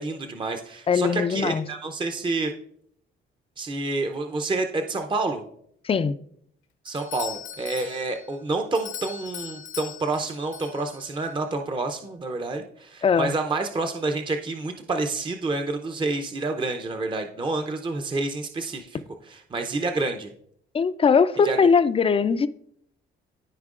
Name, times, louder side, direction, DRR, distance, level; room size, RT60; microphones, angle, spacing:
voice 1, 0.0-2.5 3.6-5.4 6.8-20.3 21.4-21.6, right 3 dB, 25° right, 0.6 m, -28 dB
voice 2, 0.9-1.7 5.8-6.2 13.0-13.3 20.7-22.5, left 6 dB, 30° left, 0.4 m, -20 dB
Doorbell, 6.9-11.3, left 9 dB, 70° left, 0.9 m, -40 dB
13.5 x 4.5 x 2.5 m
cardioid pair, 90°, 20 cm